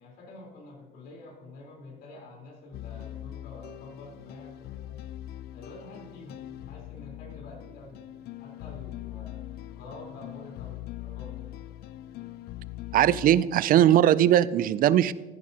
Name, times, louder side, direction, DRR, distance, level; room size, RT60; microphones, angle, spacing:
voice 1, 0.0-4.9 5.5-8.0 8.4-9.4 9.8-11.3 13.3-13.4, left 2 dB, 85° left, -2 dB, 3.9 m, -47 dB
sound 1, 2.7-13.4, left 14 dB, 70° left, 0.4 m, -41 dB
voice 2, 12.9-15.1, right 11 dB, 55° right, 18 dB, 0.4 m, -20 dB
14.5 x 11.0 x 2.9 m, 1.3 s
cardioid pair, 110°, 17 cm